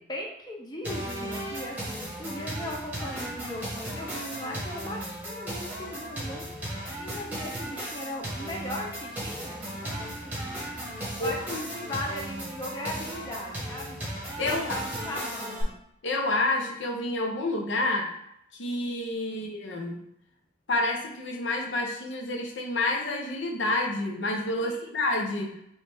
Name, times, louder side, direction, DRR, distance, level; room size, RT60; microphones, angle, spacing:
voice 1, 0.1-10.6 11.2-14.0 14.4-15.8 19.3-19.5 24.6-24.9, left 1 dB, 20° left, -1 dB, 0.6 m, -38 dB
sound 1, 0.8-15.6, right 1 dB, 10° right, 1.4 m, -36 dB
voice 2, 11.2-11.6 14.4-14.8 16.0-18.1 18.5-20.0 20.7-25.6, left 2 dB, 75° left, 1 dB, 0.7 m, -29 dB
4.2 x 3.2 x 3.4 m, 0.76 s
head